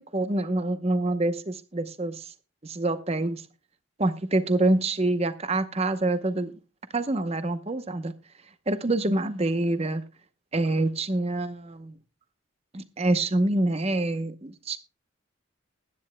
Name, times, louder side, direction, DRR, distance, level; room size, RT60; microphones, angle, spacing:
voice 1, 0.1-2.3 2.6-3.4 4.0-6.5 6.9-8.1 8.7-10.0 10.5-12.0 12.7-14.8, right 2 dB, 30° right, 0.8 m, -26 dB
20.5 x 9.8 x 2.2 m
head